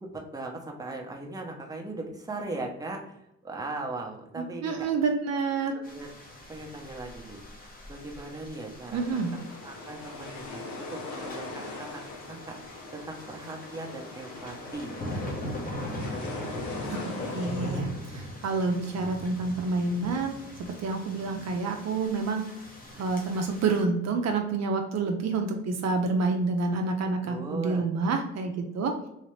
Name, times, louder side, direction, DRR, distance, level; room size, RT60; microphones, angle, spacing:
voice 1, 0.1-4.9 5.9-6.1 6.5-7.4 7.9-12.0 12.3-12.6 12.9-15.0 27.2-27.9, right 2 dB, 10° right, 0 dB, 0.8 m, -39 dB
voice 2, 4.4-5.8 8.9-9.3 16.9-20.4 20.8-22.5 23.0-29.1, right 3 dB, 60° right, 4 dB, 0.6 m, -28 dB
sound 1, 5.8-23.8, left 1 dB, 30° left, 1.0 m, -40 dB
sound 2, 8.9-17.8, left 2 dB, 70° left, 0.8 m, -41 dB
3.2 x 2.8 x 3.1 m, 0.83 s
cardioid pair, 90°, 30 cm